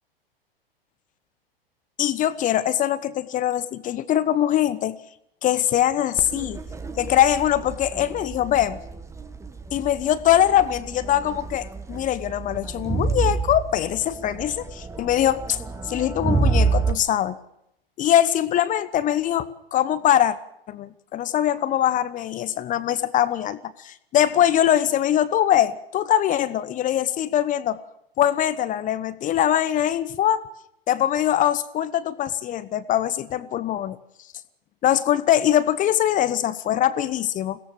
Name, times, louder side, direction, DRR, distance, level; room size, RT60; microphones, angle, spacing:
voice 1, 2.0-5.0 5.4-6.6 7.0-8.8 9.7-15.6 15.9-17.4 18.0-20.4 20.7-27.8 28.2-30.4 30.9-34.0 34.8-37.6, left 11 dB, 25° left, 15 dB, 1.0 m, -22 dB
Crowd, 6.2-16.9, right 4 dB, 10° right, 1.5 m, -28 dB
22.0 x 17.0 x 7.7 m, 0.78 s
figure-of-eight pair, 100°, 30 cm